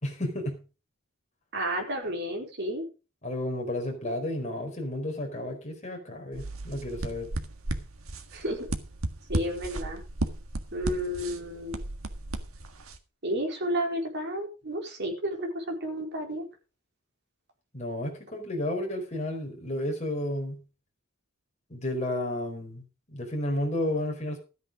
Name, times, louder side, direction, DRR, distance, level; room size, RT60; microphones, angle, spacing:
voice 1, 0.0-0.6 3.2-7.3 17.7-20.6 21.7-22.8 23.1-24.4, left 1 dB, 35° left, 2 dB, 4.5 m, -32 dB
voice 2, 1.5-2.8 8.3-8.7 9.3-10.0 10.7-11.8 13.2-16.5, equal, 55° right, 2 dB, 4.1 m, -31 dB
sound 1, 6.3-13.0, right 2 dB, 90° right, 1.7 m, -35 dB
13.5 x 9.1 x 5.0 m, 0.33 s
head